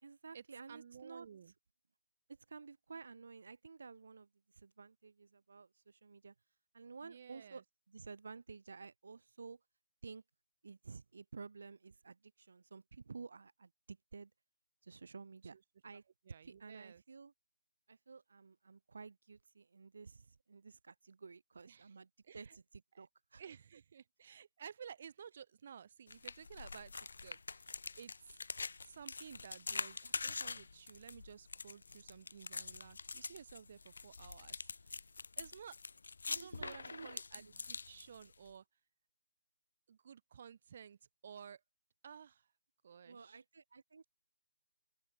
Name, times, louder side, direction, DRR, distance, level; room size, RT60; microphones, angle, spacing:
voice 1, 0.0-1.3 2.3-6.3 6.7-9.6 10.0-10.2 10.6-14.3 14.8-15.6 15.8-16.0 16.4-17.3 17.9-23.4 36.3-37.1 37.4-37.5 43.0-44.0, right 4 dB, 50° right, 3.1 m, -53 dB
voice 2, 0.7-1.5 7.0-7.6 15.5-15.6 16.2-17.0 21.7-21.9 22.3-22.6 22.9-23.1 23.4-28.4 28.8-35.0 35.4-35.8 36.3-38.6 39.9-41.6 42.0-42.5 42.8-43.4, right 7 dB, 30° right, 4.6 m, -54 dB
sound 1, 26.1-38.5, left 4 dB, 55° left, 3.1 m, -45 dB
open air
hypercardioid pair, 180°, 0 cm